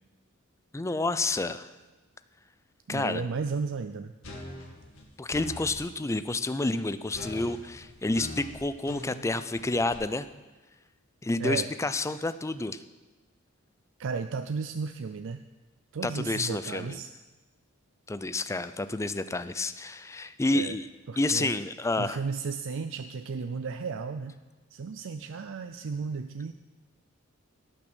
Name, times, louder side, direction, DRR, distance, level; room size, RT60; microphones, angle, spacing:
voice 1, 0.7-1.7 2.9-3.2 5.2-10.3 11.2-12.8 16.0-17.0 18.1-20.9 21.2-22.2, left 2 dB, 15° left, 12 dB, 0.4 m, -29 dB
voice 2, 2.9-4.1 11.4-11.7 14.0-15.4 15.9-17.1 20.5-20.8 21.1-21.5 22.0-24.3 24.7-26.5, right 5 dB, 60° right, 9 dB, 0.4 m, -34 dB
sound 1, 4.2-5.8 7.1-9.9, left 1 dB, 70° left, 2.5 m, -42 dB
17.5 x 6.1 x 6.2 m, 1.2 s
head